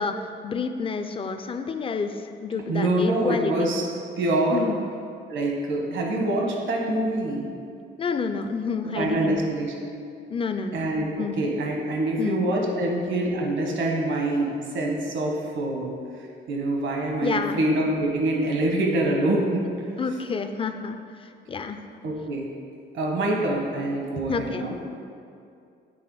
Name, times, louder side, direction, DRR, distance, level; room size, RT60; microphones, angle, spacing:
voice 1, 0.0-3.7 4.5-4.8 8.0-9.4 10.3-10.8 11.2-11.4 12.2-12.5 17.2-17.6 20.0-21.0 21.5-21.8 24.3-24.7, left 5 dB, 25° left, 8 dB, 0.4 m, -29 dB
voice 2, 2.7-3.8 4.2-4.6 5.3-7.5 8.9-9.9 10.7-15.9 16.5-19.6 22.0-22.5 22.9-24.8, right 1 dB, 70° right, 0 dB, 1.2 m, -25 dB
7.7 x 3.4 x 4.7 m, 2.4 s
cardioid pair, 90°, 20 cm